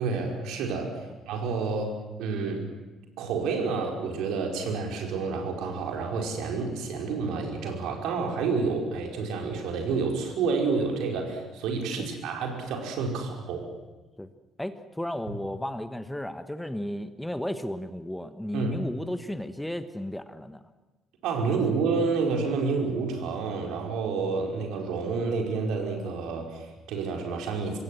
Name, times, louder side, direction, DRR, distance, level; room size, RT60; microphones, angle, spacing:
voice 1, 0.0-2.7 3.2-13.7 18.5-18.8 21.2-27.8, right 4 dB, 60° right, 2 dB, 4.8 m, -29 dB
voice 2, 14.6-20.6, left 1 dB, 5° left, 11 dB, 1.3 m, -34 dB
26.0 x 22.0 x 7.7 m, 1.2 s
figure-of-eight pair, 50°, 0 cm